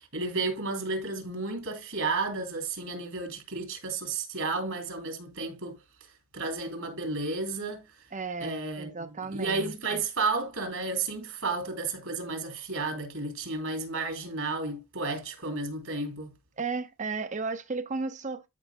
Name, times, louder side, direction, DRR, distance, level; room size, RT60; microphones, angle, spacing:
voice 1, 0.0-5.8 6.3-7.8 8.4-8.9 9.3-16.3, right 3 dB, 70° right, 3.6 m, -32 dB
voice 2, 8.1-10.0 16.6-18.4, right 4 dB, 35° right, 0.9 m, -34 dB
13.5 x 5.6 x 2.2 m
head